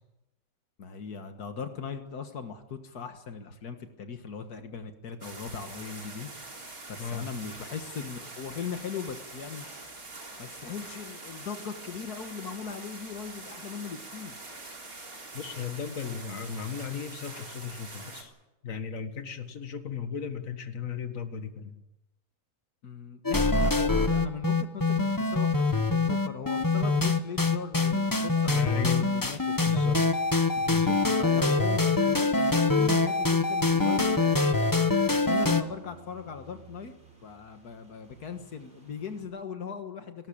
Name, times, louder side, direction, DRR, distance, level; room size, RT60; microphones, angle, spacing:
voice 1, 0.8-6.3 6.9-9.8 10.4-14.4 22.8-29.8 31.2-34.8 35.3-36.9 37.2-40.3, left 6 dB, 85° left, 7 dB, 2.0 m, -39 dB
sound 1, 5.2-18.2, right 2 dB, 65° right, 4.0 m, -44 dB
voice 2, 15.3-18.3 18.6-21.7 28.4-29.1 29.7-30.0 30.6-31.0, left 7 dB, 60° left, 7 dB, 2.1 m, -35 dB
sound 2, 23.2-35.6, left 3 dB, 15° left, 1.0 m, -24 dB
sound 3, 33.7-39.2, right 3 dB, 35° right, 7.2 m, -54 dB
19.0 x 18.5 x 8.8 m, 0.96 s
omnidirectional pair, 1.6 m